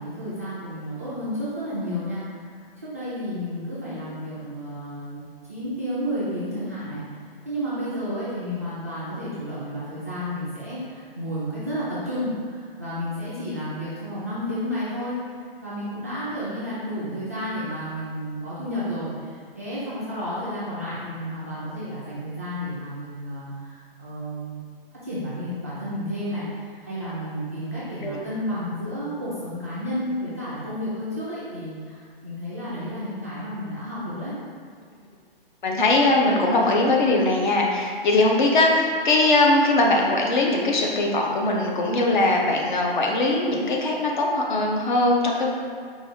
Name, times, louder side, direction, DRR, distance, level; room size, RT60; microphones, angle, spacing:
voice 1, 0.0-5.2 5.5-15.2 15.6-24.6 25.0-34.3, equal, 15° right, -11 dB, 0.4 m, -31 dB
voice 2, 35.6-45.5, left 2 dB, 50° left, -1 dB, 0.8 m, -21 dB
4.8 x 2.4 x 4.4 m, 2.1 s
hypercardioid pair, 165°, 30 cm